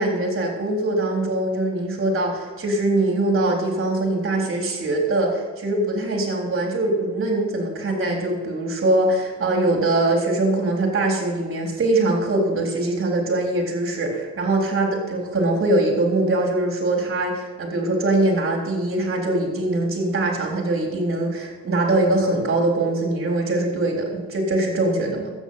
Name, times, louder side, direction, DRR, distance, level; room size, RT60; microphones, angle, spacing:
voice 1, 0.0-25.3, right 2 dB, 45° right, 0 dB, 3.8 m, -22 dB
13.5 x 8.8 x 5.7 m, 1.3 s
cardioid pair, 90°, 30 cm